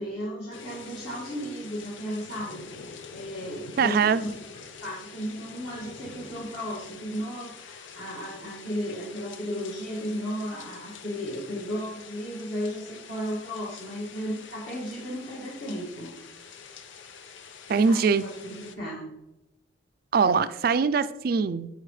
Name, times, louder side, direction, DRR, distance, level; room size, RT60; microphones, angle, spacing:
voice 1, 0.0-4.3 4.8-16.1 17.6-19.1, equal, 60° left, -7 dB, 2.0 m, -35 dB
sound 1, 0.5-18.8, left 5 dB, 75° left, 0.7 m, -46 dB
voice 2, 3.8-4.2 17.7-18.3 20.1-21.7, right 5 dB, 50° right, 13 dB, 0.4 m, -22 dB
14.5 x 4.8 x 3.2 m, 1.0 s
head